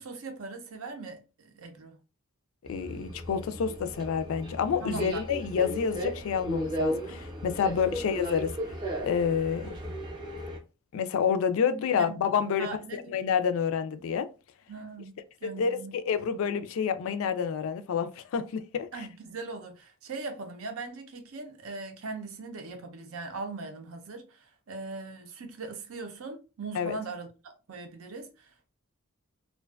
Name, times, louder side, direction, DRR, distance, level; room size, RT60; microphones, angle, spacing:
voice 1, 0.0-2.0 4.8-5.2 7.7-7.9 12.0-12.3 12.6-13.2 14.7-15.9 18.9-28.7, right 3 dB, 75° right, 0.5 m, -40 dB
voice 2, 2.7-8.5 9.0-9.7 10.9-14.3 15.4-18.9 26.8-27.0, left 7 dB, 70° left, 0.3 m, -28 dB
Subway metro underground, 2.7-10.6, equal, 20° right, 0.5 m, -35 dB
2.4 x 2.2 x 2.3 m
head